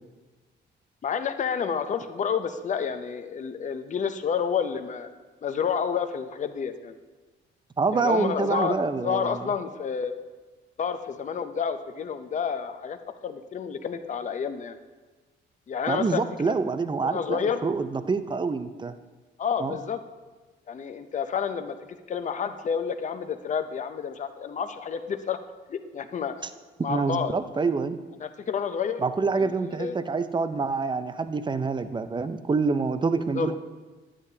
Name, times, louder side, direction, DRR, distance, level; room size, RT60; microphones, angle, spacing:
voice 1, 1.0-5.1 5.4-7.0 7.9-10.1 10.8-13.0 13.2-14.8 15.7-16.5 17.0-17.6 19.4-20.0 20.7-25.4 25.7-26.3 26.8-27.3 28.2-30.0 33.3-33.5, left 7 dB, 40° left, 9 dB, 0.6 m, -30 dB
voice 2, 7.8-9.4 15.9-18.9 19.6-19.7 26.9-28.0 29.0-33.6, right 4 dB, 25° right, 11 dB, 0.5 m, -26 dB
11.5 x 8.7 x 2.8 m, 1.3 s
cardioid pair, 90°, 20 cm